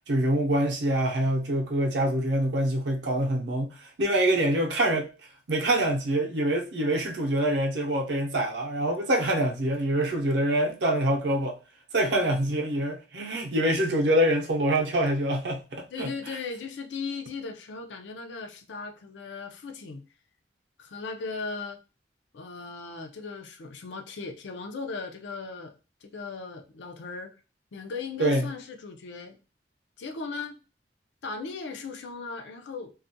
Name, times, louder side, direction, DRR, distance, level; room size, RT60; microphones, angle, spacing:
voice 1, 0.1-5.1 5.5-11.6 11.9-16.1 28.2-28.5, right 1 dB, 70° right, 0.6 m, -25 dB
voice 2, 12.1-12.4 15.9-20.0 20.8-21.8 22.3-25.7 26.0-27.3 27.7-29.4 30.0-30.6 31.2-32.9, left 4 dB, 90° left, 0.5 m, -37 dB
2.4 x 2.1 x 2.7 m
head